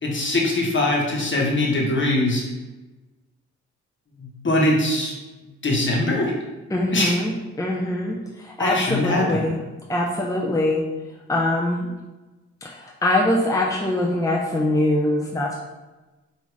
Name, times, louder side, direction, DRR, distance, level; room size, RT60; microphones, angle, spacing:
voice 1, 0.0-2.4 4.2-5.1 5.4-6.3 6.9-7.2 8.6-9.5, left 1 dB, 40° left, -2 dB, 1.3 m, -22 dB
voice 2, 6.7-9.6 9.9-10.8 11.3-11.9 12.6-15.6, left 1 dB, 10° left, -2 dB, 0.6 m, -23 dB
4.6 x 2.8 x 3.3 m, 1.1 s
supercardioid pair, 50°, 29 cm